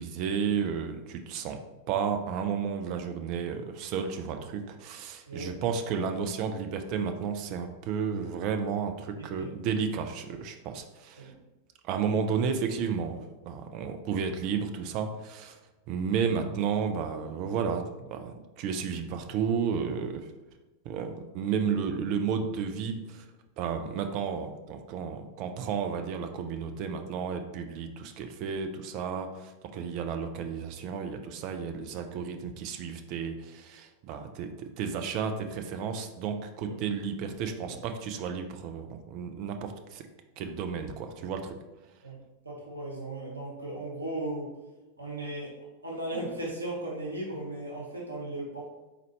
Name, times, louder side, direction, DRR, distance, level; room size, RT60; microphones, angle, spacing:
voice 1, 0.0-1.6 1.9-11.3 11.8-15.6 15.9-20.3 20.8-23.2 23.6-40.1 40.4-41.6, right 6 dB, 40° right, 6 dB, 0.5 m, -32 dB
voice 2, 9.1-9.5 11.2-11.3 21.7-21.9 36.6-36.8 37.6-37.8 42.0-42.2 42.4-44.6 45.0-45.6 45.8-48.7, right 1 dB, 80° right, -3 dB, 1.1 m, -37 dB
4.1 x 4.0 x 3.1 m, 1.1 s
figure-of-eight pair, 90°, 0 cm